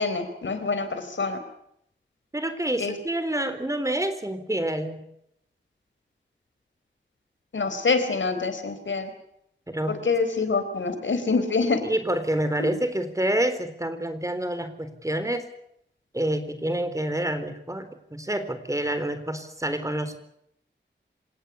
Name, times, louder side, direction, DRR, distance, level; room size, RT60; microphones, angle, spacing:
voice 1, 0.0-1.4 2.8-2.9 7.5-9.1 9.9-11.8, left 4 dB, 80° left, 9 dB, 4.3 m, -26 dB
voice 2, 2.3-5.0 9.7-10.1 11.8-15.5 16.1-20.2, right 1 dB, 15° right, 10 dB, 4.1 m, -28 dB
27.0 x 18.5 x 8.3 m, 0.74 s
wide cardioid pair, 75°, 19 cm